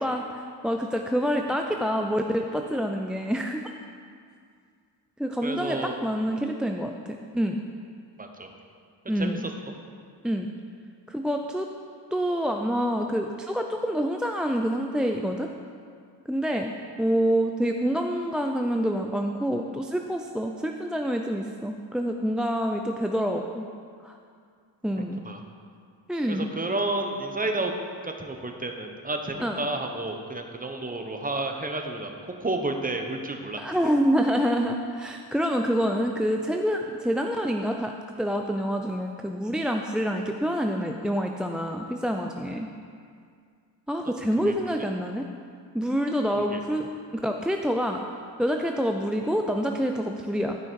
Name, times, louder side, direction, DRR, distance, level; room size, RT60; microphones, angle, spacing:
voice 1, 0.0-3.6 5.2-7.6 9.1-9.4 10.2-10.5 11.1-11.7 12.1-15.5 16.3-23.7 24.0-24.2 24.8-25.2 26.1-26.5 29.4-29.6 33.6-37.9 38.2-42.7 43.9-45.3 45.7-46.9 47.2-48.0 48.4-50.6, equal, ahead, 3 dB, 0.3 m, -27 dB
voice 2, 5.4-6.0 8.2-8.5 9.2-9.4 25.2-25.4 26.3-27.7 28.0-32.1 32.4-33.6 44.1-44.2 44.4-44.5 46.4-46.6, right 2 dB, 20° right, 4 dB, 0.9 m, -31 dB
11.5 x 5.6 x 4.6 m, 2.2 s
cardioid pair, 85°, 46 cm